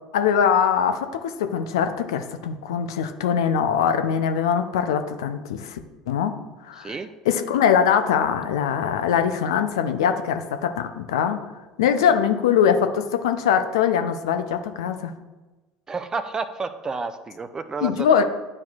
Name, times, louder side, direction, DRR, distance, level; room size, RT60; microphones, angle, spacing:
voice 1, 0.1-5.8 6.1-6.4 6.6-7.0 7.3-11.4 11.8-15.1 17.8-18.2, left 8 dB, 70° left, 8 dB, 0.5 m, -22 dB
voice 2, 6.8-7.1 12.0-12.1 15.9-18.2, right 4 dB, 25° right, 10 dB, 0.5 m, -31 dB
10.5 x 4.4 x 2.4 m, 1.2 s
figure-of-eight pair, 65°, 3 cm